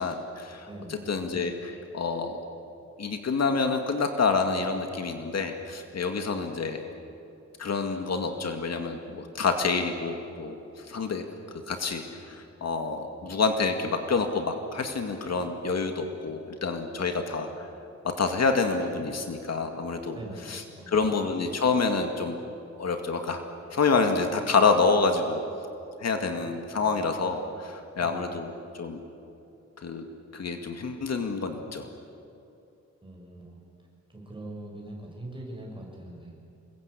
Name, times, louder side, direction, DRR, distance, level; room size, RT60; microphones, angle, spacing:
voice 1, 0.0-0.7 1.1-2.4 3.0-6.8 7.6-10.6 10.9-11.2 11.7-17.7 18.2-20.2 20.4-22.4 22.8-23.4 23.7-25.4 26.0-29.0 29.8-30.1 30.3-31.9, left 4 dB, 60° left, 5 dB, 2.2 m, -27 dB
voice 2, 0.6-0.9 20.1-20.9 28.0-28.2 33.0-33.6 34.1-36.3, right 1 dB, 15° right, -1 dB, 7.4 m, -42 dB
27.5 x 22.5 x 8.5 m, 2.7 s
wide cardioid pair, 145°, 29 cm